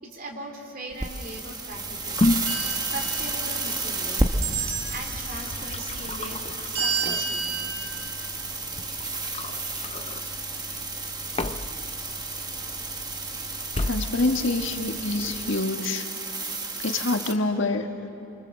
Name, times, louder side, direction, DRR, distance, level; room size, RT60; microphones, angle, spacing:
voice 1, 0.0-2.3 2.8-4.4 4.9-7.6, right 1 dB, 45° right, 2 dB, 3.3 m, -39 dB
sound 1, 0.9-17.3, right 3 dB, 20° right, 1.2 m, -32 dB
sound 2, 1.7-15.6, left 2 dB, 30° left, 0.5 m, -34 dB
sound 3, 2.5-3.9 4.4-5.3 6.8-7.9, right 5 dB, 75° right, 3.5 m, -31 dB
voice 2, 13.8-16.1 16.7-17.9, left 2 dB, 65° left, 5 dB, 1.5 m, -26 dB
26.5 x 25.0 x 7.5 m, 2.7 s
head